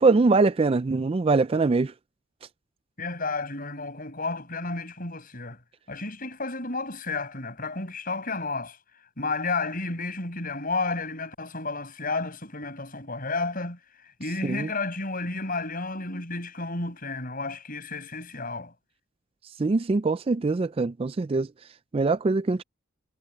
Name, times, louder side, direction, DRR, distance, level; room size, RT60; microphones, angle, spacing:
voice 1, 0.0-1.9 14.4-14.7 19.6-21.5 21.9-22.6, right 3 dB, 25° right, 0.3 m, -23 dB
voice 2, 3.0-5.6 5.9-8.8 9.2-13.8 14.2-18.7, left 3 dB, 45° left, 6.6 m, -32 dB
head